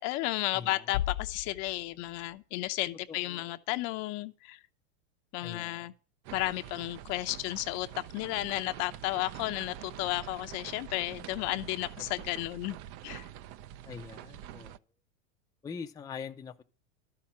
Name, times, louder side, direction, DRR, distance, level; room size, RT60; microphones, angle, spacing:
voice 1, 0.0-4.6 5.3-5.9 6.3-12.8 13.0-13.3, left 18 dB, 45° left, 0.8 m, -33 dB
voice 2, 0.5-0.9 3.1-3.5 5.4-5.9 12.2-12.3 13.8-14.7 15.6-16.6, left 6 dB, 10° left, 0.6 m, -43 dB
Bass drum, 0.9-2.6, left 13 dB, 85° left, 0.6 m, -36 dB
sound 1, 6.2-14.8, right 12 dB, 40° right, 0.5 m, -46 dB
12.0 x 5.9 x 8.6 m
supercardioid pair, 130°, 38 cm